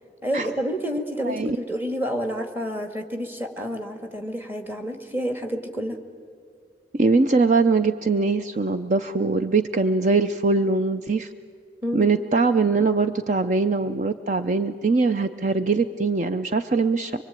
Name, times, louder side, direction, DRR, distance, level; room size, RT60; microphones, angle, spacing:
voice 1, 0.2-6.0 11.8-12.1, equal, 10° right, 5 dB, 1.7 m, -29 dB
voice 2, 1.2-1.6 6.9-11.3 11.9-17.2, right 4 dB, 40° right, 9 dB, 0.6 m, -22 dB
24.5 x 23.5 x 9.0 m, 2.2 s
head